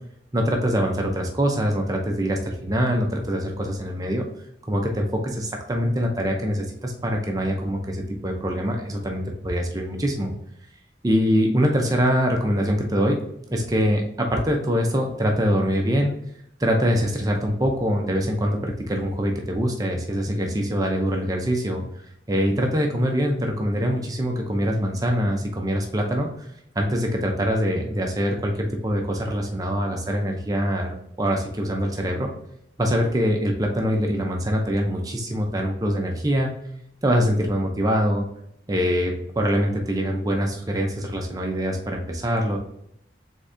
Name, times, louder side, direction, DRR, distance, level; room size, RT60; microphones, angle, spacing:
voice 1, 0.3-4.2 4.7-10.3 11.0-13.2 13.5-16.1 16.6-21.8 22.3-26.5 26.7-32.3 32.8-36.6 37.0-38.3 38.7-42.6, equal, 20° right, 1 dB, 0.6 m, -24 dB
4.0 x 3.6 x 3.3 m, 0.74 s
head